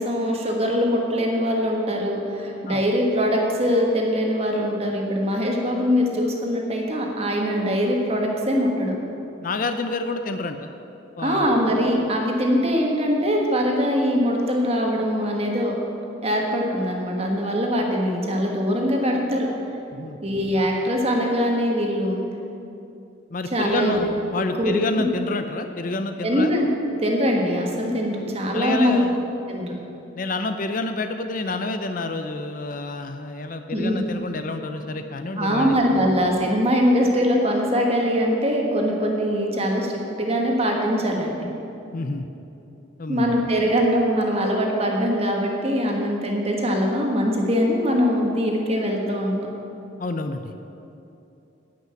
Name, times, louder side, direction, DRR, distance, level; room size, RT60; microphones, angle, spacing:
voice 1, 0.0-8.9 11.2-15.7 16.2-19.5 20.2-22.2 23.5-24.0 24.6-25.0 26.2-26.7 27.0-29.1 29.5-29.8 33.7-34.1 35.4-41.5 43.1-49.4, equal, 30° right, 0 dB, 1.5 m, -22 dB
voice 2, 9.4-10.7 11.2-11.5 19.9-20.2 23.3-26.5 28.5-29.2 30.1-36.1 41.9-42.3 43.0-43.4 50.0-50.5, left 2 dB, 45° left, 7 dB, 0.5 m, -28 dB
11.5 x 5.9 x 8.8 m, 2.8 s
head